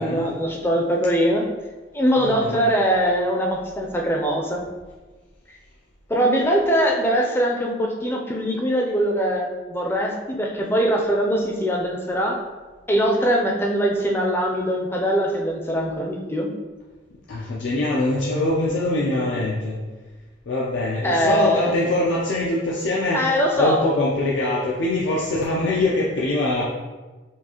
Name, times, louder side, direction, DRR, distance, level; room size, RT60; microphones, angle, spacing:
voice 1, 0.0-1.5 1.9-4.6 6.1-12.4 12.9-16.5 21.0-21.7 23.1-23.8, equal, 15° left, 0 dB, 0.4 m, -22 dB
voice 2, 2.2-2.6 17.3-19.8 20.5-26.6, left 2 dB, 85° left, -4 dB, 0.5 m, -23 dB
4.5 x 2.4 x 2.9 m, 1.3 s
head